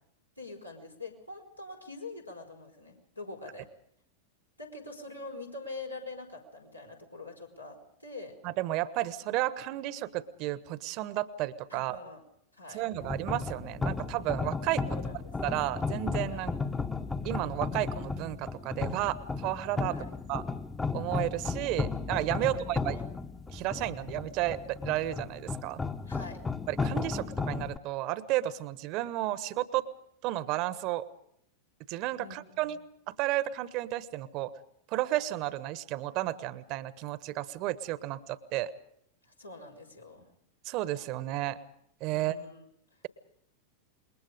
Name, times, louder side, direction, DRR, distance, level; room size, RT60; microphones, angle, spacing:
voice 1, 0.4-3.7 4.6-7.7 8.0-8.3 11.7-12.2 12.5-12.8 14.9-15.3 16.3-16.5 19.9-20.1 22.3-23.1 26.0-26.4 32.2-32.7 39.4-40.3 42.1-42.7, left 3 dB, 90° left, 0 dB, 4.9 m, -44 dB
voice 2, 8.4-12.0 12.7-15.0 15.4-16.5 17.2-20.0 20.3-20.4 20.9-23.0 23.5-25.8 26.7-29.8 30.2-31.0 31.9-32.8 33.1-34.5 34.9-38.7 40.6-41.6 42.0-42.4, right 15 dB, 40° right, 15 dB, 1.2 m, -32 dB
sound 1, 13.0-27.8, left 4 dB, 10° left, 1.1 m, -34 dB
27.5 x 22.0 x 5.2 m, 0.72 s
figure-of-eight pair, 90°, 0 cm